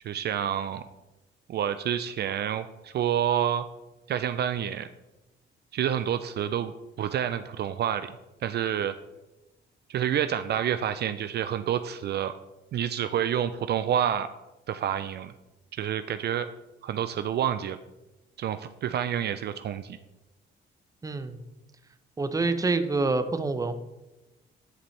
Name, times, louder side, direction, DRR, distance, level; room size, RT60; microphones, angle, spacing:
voice 1, 0.0-0.8 1.5-3.7 4.1-4.9 5.7-8.1 8.4-9.0 9.9-12.3 12.7-14.3 14.7-15.3 15.7-16.5 16.8-17.8 18.4-20.0, right 9 dB, 55° right, 10 dB, 0.4 m, -28 dB
voice 2, 21.0-21.4 22.2-23.7, right 3 dB, 15° right, 10 dB, 0.6 m, -26 dB
10.0 x 5.2 x 3.2 m, 0.99 s
cardioid pair, 90°, 20 cm